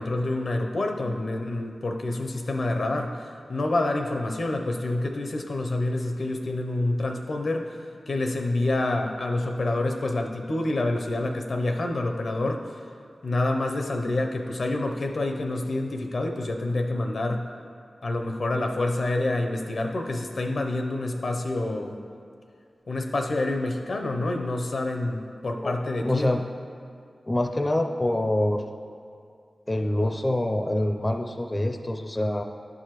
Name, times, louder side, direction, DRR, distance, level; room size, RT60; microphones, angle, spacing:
voice 1, 0.0-7.8 8.1-12.6 13.2-17.5 18.0-21.9 22.9-26.4, left 2 dB, 70° left, 3 dB, 0.6 m, -27 dB
voice 2, 26.0-26.4 27.3-28.6 29.7-32.4, left 1 dB, 25° left, 4 dB, 0.4 m, -25 dB
11.0 x 4.8 x 3.0 m, 2.3 s
cardioid pair, 60°, 0 cm